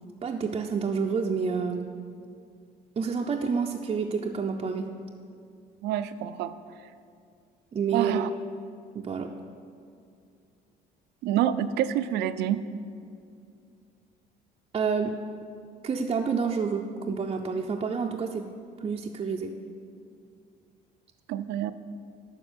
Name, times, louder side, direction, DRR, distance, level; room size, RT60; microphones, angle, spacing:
voice 1, 0.2-1.9 3.0-4.9 7.7-8.3 8.9-9.3 14.7-15.2 15.8-18.5 18.8-19.6, right 5 dB, 30° right, 1 dB, 0.5 m, -29 dB
voice 2, 5.8-6.5 7.9-8.3 11.2-12.6 21.3-21.7, right 11 dB, 85° right, 12 dB, 0.5 m, -27 dB
12.0 x 4.3 x 7.1 m, 2.4 s
cardioid pair, 110°, 17 cm